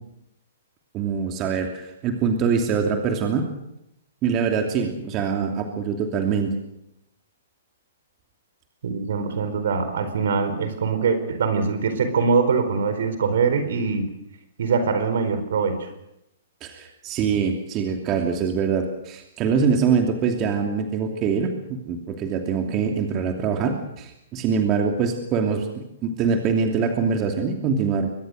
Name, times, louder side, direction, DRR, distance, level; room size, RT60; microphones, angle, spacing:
voice 1, 0.9-3.5 4.2-6.5 16.6-28.1, right 6 dB, 30° right, 4 dB, 2.8 m, -24 dB
voice 2, 8.8-14.0 14.6-15.9, right 5 dB, 65° right, 9 dB, 4.4 m, -23 dB
24.0 x 20.5 x 6.6 m, 0.83 s
hypercardioid pair, 120°, 0 cm